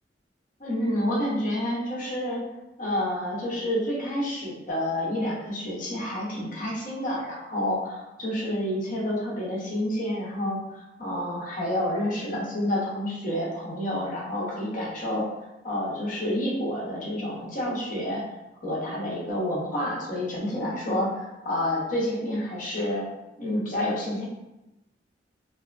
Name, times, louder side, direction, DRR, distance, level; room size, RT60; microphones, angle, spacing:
voice 1, 0.6-2.4 2.8-15.2 15.6-18.2 18.6-23.1 23.4-24.2, left 1 dB, 50° left, -5 dB, 0.8 m, -29 dB
2.6 x 2.2 x 2.4 m, 0.96 s
head